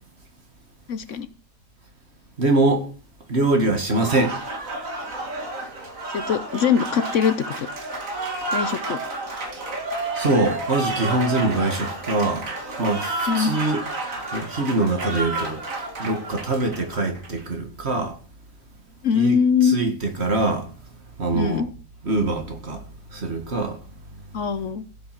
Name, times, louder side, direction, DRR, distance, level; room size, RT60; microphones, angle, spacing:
voice 1, 0.9-1.3 6.1-7.7 8.5-9.0 13.3-13.5 19.0-19.8 21.3-21.7 24.3-24.8, left 7 dB, 65° left, 1.1 m, -22 dB
voice 2, 2.4-2.9 3.3-4.4 10.1-13.8 14.3-15.6 16.0-18.2 19.1-20.7 21.2-21.7 22.0-22.8 23.1-23.8, right 2 dB, 50° right, 2.2 m, -23 dB
Applause, 3.8-17.4, right 2 dB, 70° right, 2.5 m, -30 dB
15.5 x 7.7 x 6.0 m
omnidirectional pair, 1.5 m